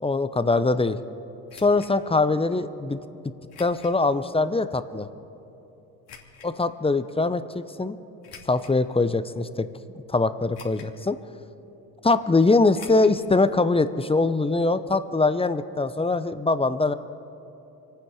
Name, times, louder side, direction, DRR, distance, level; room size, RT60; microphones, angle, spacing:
voice 1, 0.0-1.0 1.5-3.0 3.6-5.1 6.4-8.0 8.5-9.7 10.1-11.2 12.0-16.9, left 3 dB, 15° left, 12 dB, 0.8 m, -22 dB
sound 1, 1.5-1.9 3.5-4.0 4.5-4.6 6.1-6.5 8.2-8.8 9.4-9.5 10.5-11.0 11.3-11.4 12.7-13.2 13.5-13.6 13.8-13.9, left 6 dB, 60° left, 2.7 m, -47 dB
27.0 x 9.5 x 4.9 m, 2.9 s
hypercardioid pair, 60°, 44 cm